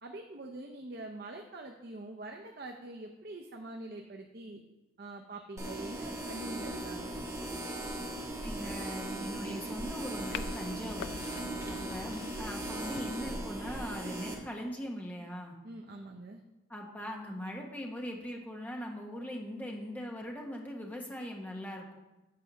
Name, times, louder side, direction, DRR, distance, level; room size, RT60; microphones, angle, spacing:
voice 1, 0.0-4.6 5.0-7.1 11.4-12.0 15.6-16.4, right 2 dB, 50° right, 2 dB, 0.7 m, -45 dB
sound 1, 5.6-14.3, right 1 dB, 15° right, 1.3 m, -38 dB
voice 2, 8.4-11.2 11.7-15.6 16.7-22.0, equal, 10° left, 0 dB, 1.2 m, -40 dB
sound 2, 10.1-13.1, left 7 dB, 70° left, 0.4 m, -45 dB
8.5 x 4.8 x 6.8 m, 1.0 s
head